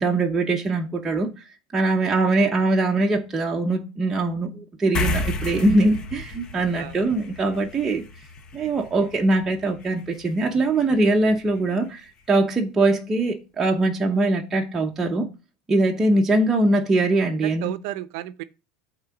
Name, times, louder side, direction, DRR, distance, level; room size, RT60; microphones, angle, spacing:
voice 1, 0.0-1.3 1.7-8.0 8.5-15.3 15.7-17.7, right 2 dB, 10° right, 0.8 m, -22 dB
voice 2, 2.0-2.3 6.7-7.0 16.3-16.4 17.4-18.4, right 14 dB, 60° right, 0.6 m, -34 dB
sound 1, 4.9-11.7, left 2 dB, 25° left, 0.8 m, -33 dB
8.7 x 3.7 x 6.9 m
supercardioid pair, 170°, 3 cm